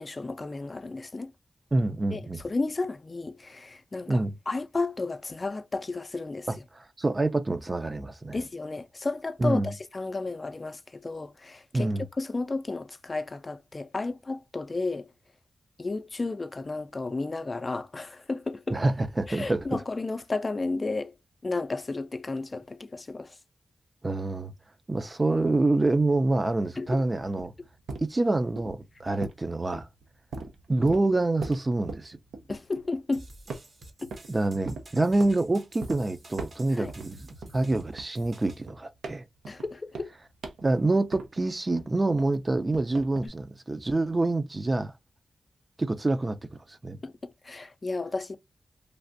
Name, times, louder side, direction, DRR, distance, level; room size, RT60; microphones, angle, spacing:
voice 1, 0.0-1.3 2.1-6.5 8.3-15.1 15.8-18.8 19.3-21.1 21.4-23.4 26.8-27.0 32.5-33.3 34.0-34.1 36.7-36.9 39.5-40.1 47.0-48.4, left 3 dB, 40° left, 0.4 m, -33 dB
voice 2, 1.7-2.4 4.1-4.3 6.5-8.4 9.4-9.7 11.7-12.1 18.7-19.7 24.0-24.5 24.9-27.5 28.0-29.9 30.7-32.2 34.3-37.3 37.5-39.2 40.6-44.9 45.8-46.4 46.7-47.0, right 2 dB, 35° right, 0.5 m, -26 dB
sound 1, 26.8-33.1 33.5-34.3 34.7-35.4 35.8-36.0 36.3-37.1 37.4-41.5 41.8-43.3, right 3 dB, 90° right, 0.5 m, -40 dB
sound 2, 33.1-38.7, right 1 dB, 60° right, 0.9 m, -50 dB
3.2 x 2.5 x 2.5 m
cardioid pair, 45°, 0 cm